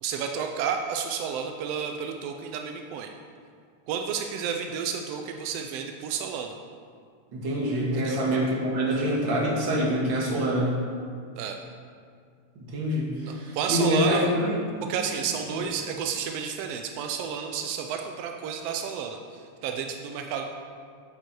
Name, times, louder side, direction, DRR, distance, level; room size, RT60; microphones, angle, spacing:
voice 1, 0.0-3.1 3.9-6.6 7.9-8.2 11.4-11.6 13.2-14.3 14.9-20.4, right 7 dB, 85° right, 4 dB, 1.4 m, -31 dB
voice 2, 7.3-10.7 12.6-14.6, equal, 45° right, -4 dB, 2.0 m, -25 dB
9.0 x 6.9 x 4.6 m, 2.2 s
omnidirectional pair, 3.4 m